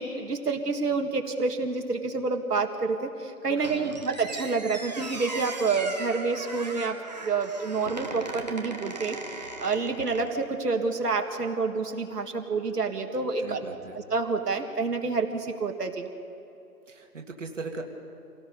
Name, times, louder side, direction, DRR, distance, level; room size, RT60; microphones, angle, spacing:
voice 1, 0.0-13.6 14.1-16.1, right 4 dB, 75° right, 3 dB, 2.0 m, -28 dB
Squeak, 3.6-10.5, right 2 dB, 25° right, 1.1 m, -38 dB
voice 2, 3.6-4.0 13.4-14.0 16.9-17.8, right 3 dB, 50° right, 2 dB, 2.0 m, -39 dB
26.5 x 18.0 x 5.4 m, 2.9 s
hypercardioid pair, 180°, 47 cm